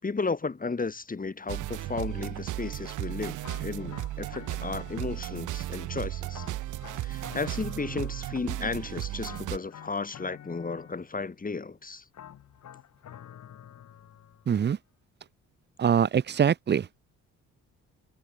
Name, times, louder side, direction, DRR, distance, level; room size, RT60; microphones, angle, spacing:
voice 1, 0.0-6.5 7.0-12.0, left 4 dB, 30° left, 7.3 m, -34 dB
sound 1, 1.5-9.6, right 15 dB, 80° right, 1.4 m, -35 dB
sound 2, 3.4-5.5 6.3-8.7 9.2-11.3 12.1-14.5, left 10 dB, 65° left, 6.1 m, -49 dB
voice 2, 14.5-14.8 15.8-16.9, right 8 dB, 35° right, 0.7 m, -23 dB
cardioid pair, 90°, 30 cm